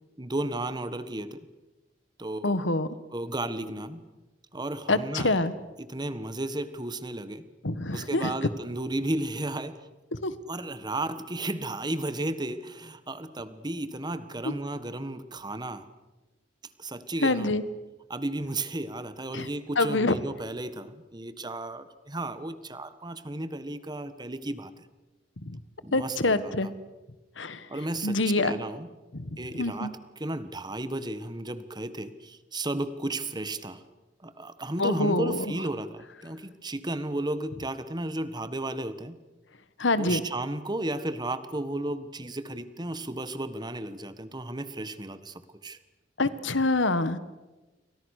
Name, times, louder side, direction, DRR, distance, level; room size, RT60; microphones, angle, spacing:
voice 1, 0.2-1.5 2.2-2.6 3.1-4.0 4.5-5.5 5.8-7.4 7.9-9.9 10.5-15.9 16.8-17.5 18.1-24.8 25.8-26.5 27.7-28.9 29.4-33.8 34.2-39.2 40.0-45.8, right 1 dB, 25° right, 12 dB, 1.5 m, -34 dB
voice 2, 2.4-2.9 4.9-5.5 7.6-8.3 10.1-10.3 17.2-17.6 19.3-19.5 19.8-20.2 25.4-25.6 25.9-26.7 27.4-27.6 28.0-28.6 29.1-29.9 34.8-35.4 39.8-40.2 46.2-47.2, left 2 dB, 80° left, 13 dB, 1.6 m, -26 dB
29.5 x 24.0 x 6.6 m, 1.1 s
head